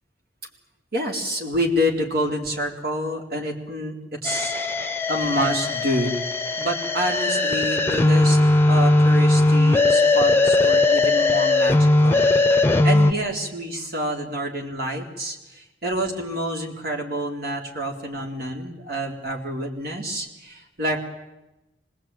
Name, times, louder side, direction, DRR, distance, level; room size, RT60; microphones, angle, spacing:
voice 1, 0.9-4.6 5.1-6.3 6.6-8.4 8.7-12.3 12.6-21.0, equal, 60° right, 2 dB, 4.1 m, -27 dB
sound 1, 4.2-13.1, left 2 dB, 15° left, 1.0 m, -19 dB
25.5 x 20.5 x 9.2 m, 0.98 s
head